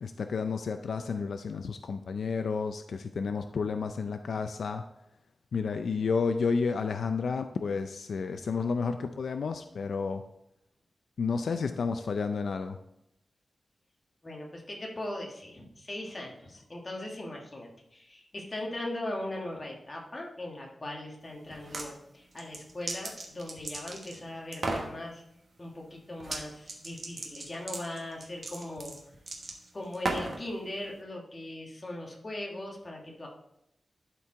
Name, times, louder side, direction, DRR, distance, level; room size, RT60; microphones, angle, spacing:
voice 1, 0.0-4.8 5.5-10.2 11.2-12.8, left 5 dB, 80° left, 8 dB, 0.4 m, -31 dB
voice 2, 14.2-25.2 25.6-28.9 29.7-33.3, left 1 dB, 25° left, -1 dB, 1.4 m, -39 dB
sound 1, 21.5-21.9 22.4-24.2 24.5-24.9 26.2-26.4 26.7-30.4, right 2 dB, 45° right, 1.2 m, -35 dB
11.5 x 4.5 x 3.7 m, 0.81 s
wide cardioid pair, 170°, 0 cm